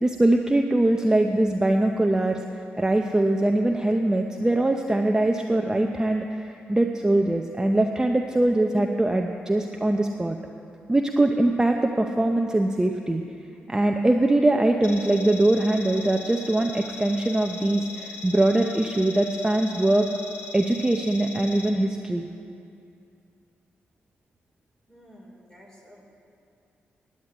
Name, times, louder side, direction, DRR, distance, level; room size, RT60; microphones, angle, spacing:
voice 1, 0.0-10.4 10.9-13.2 13.7-20.1 20.5-22.3, right 1 dB, 15° right, 3 dB, 0.7 m, -22 dB
sound 1, 14.8-21.7, left 4 dB, 90° left, 1.1 m, -39 dB
voice 2, 24.9-26.0, equal, 15° left, -1 dB, 3.2 m, -51 dB
9.7 x 9.6 x 8.7 m, 2.6 s
cardioid pair, 75°, 4 cm